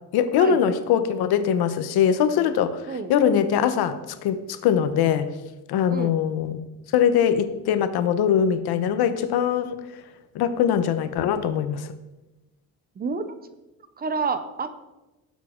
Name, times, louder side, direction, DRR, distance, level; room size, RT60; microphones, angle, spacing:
voice 1, 0.1-5.3 5.7-6.6 6.9-9.8 10.3-11.9, left 8 dB, 85° left, 11 dB, 1.1 m, -22 dB
voice 2, 5.9-6.2 13.0-13.2 14.0-14.7, right 4 dB, 25° right, 11 dB, 0.7 m, -28 dB
18.5 x 7.4 x 3.8 m, 1.0 s
cardioid pair, 165°, 37 cm